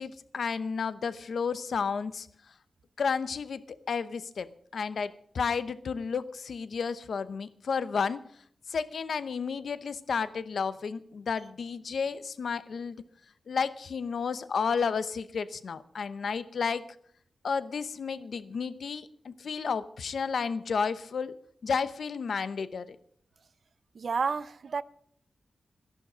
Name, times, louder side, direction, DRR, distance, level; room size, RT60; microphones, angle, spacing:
voice 1, 0.0-2.3 3.0-4.5 4.7-8.2 8.7-13.0 13.5-16.8 17.4-21.4 21.6-23.0, left 5 dB, 70° left, 0.8 m, -32 dB
voice 2, 24.0-24.8, right 5 dB, 60° right, 0.5 m, -30 dB
13.0 x 11.5 x 6.2 m
wide cardioid pair, 135°, 0 cm